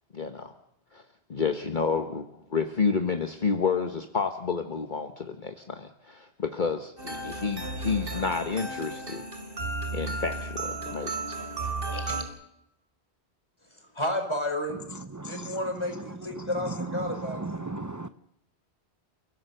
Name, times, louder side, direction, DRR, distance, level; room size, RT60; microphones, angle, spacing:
voice 1, 0.1-0.5 0.9-1.0 1.3-9.2 9.9-11.1, left 5 dB, 45° left, 6 dB, 1.4 m, -30 dB
sound 1, 7.0-12.2, right 2 dB, 55° right, 3.6 m, -34 dB
voice 2, 11.9-12.2 13.9-14.8 15.2-17.7, left 1 dB, 25° left, 5 dB, 4.3 m, -32 dB
voice 3, 15.1-15.6 16.3-18.1, right 3 dB, 20° right, 11 dB, 0.7 m, -35 dB
30.0 x 16.0 x 6.8 m, 0.82 s
omnidirectional pair, 1.1 m